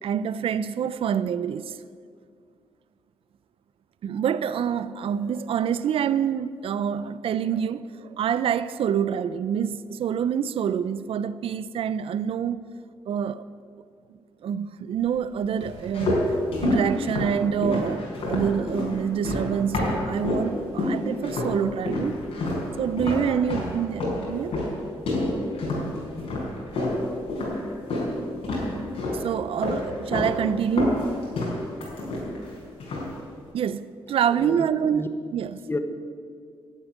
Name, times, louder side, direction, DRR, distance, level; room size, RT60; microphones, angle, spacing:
voice 1, 0.0-1.8 4.0-12.6 13.1-13.4 14.4-16.3 16.6-22.2 22.8-24.6 29.1-31.1 33.5-35.6, right 8 dB, 65° right, 0.5 m, -26 dB
sound 1, 15.6-20.5 20.8-21.6 21.9-28.1 28.4-29.2 29.6-30.3 30.6-32.5 32.8-33.2, left 2 dB, 80° left, 4.5 m, -27 dB
voice 2, 34.3-35.1 35.7-35.8, left 2 dB, 25° left, 1.2 m, -31 dB
11.5 x 7.9 x 9.2 m
cardioid pair, 105°, 10 cm